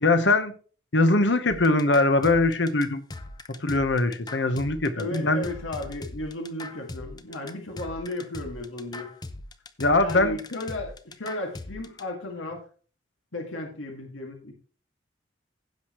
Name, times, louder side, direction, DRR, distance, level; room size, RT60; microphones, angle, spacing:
voice 1, 0.0-0.5 0.9-3.0 3.6-5.4 9.8-10.4, left 2 dB, 65° left, 9 dB, 1.1 m, -22 dB
sound 1, 1.5-12.0, left 2 dB, 20° left, 0.7 m, -40 dB
voice 2, 5.0-9.1 10.0-12.6 13.3-14.5, left 1 dB, 90° left, 2 dB, 2.1 m, -34 dB
16.0 x 6.5 x 3.1 m, 0.39 s
head